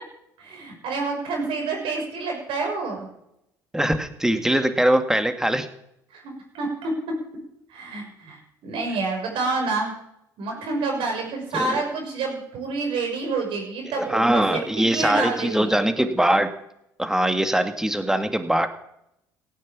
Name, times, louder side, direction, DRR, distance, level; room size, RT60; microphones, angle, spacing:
voice 1, 0.4-3.1 6.1-6.9 7.7-9.9 10.4-15.7, right 3 dB, 65° right, 1 dB, 6.2 m, -28 dB
voice 2, 3.7-5.7 11.5-11.8 13.9-16.5 17.0-18.7, right 1 dB, 5° right, 8 dB, 2.1 m, -22 dB
17.0 x 9.5 x 8.6 m, 0.80 s
hypercardioid pair, 60°, 10 cm